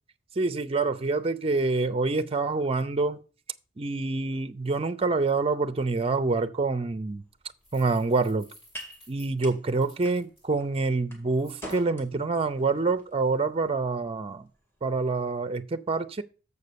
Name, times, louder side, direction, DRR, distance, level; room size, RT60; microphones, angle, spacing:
voice 1, 0.4-3.2 3.8-7.2 7.7-8.5 9.1-14.5 14.8-16.2, right 3 dB, 30° right, 0.5 m, -26 dB
sound 1, 7.2-15.6, equal, 10° left, 2.1 m, -49 dB
sound 2, 7.6-10.4 11.3-11.8, left 1 dB, 30° left, 4.4 m, -55 dB
6.8 x 5.3 x 6.8 m
head